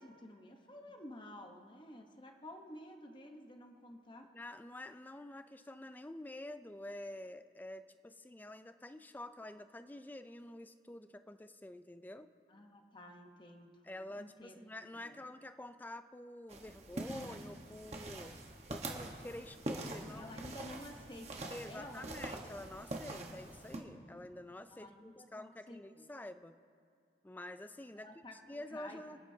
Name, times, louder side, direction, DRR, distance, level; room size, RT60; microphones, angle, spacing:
voice 1, 0.0-4.3 12.5-13.8 14.1-14.6 15.0-15.2 20.1-22.1 22.4-23.1 24.7-26.0 27.9-29.2, left 1 dB, 25° left, 3 dB, 1.0 m, -52 dB
voice 2, 4.3-12.3 13.8-18.4 18.7-20.5 21.5-26.6 27.2-29.2, left 1 dB, 10° left, 11 dB, 0.3 m, -48 dB
sound 1, 16.5-23.8, right 2 dB, 35° right, 1.2 m, -44 dB
29.0 x 9.8 x 2.8 m, 2.4 s
head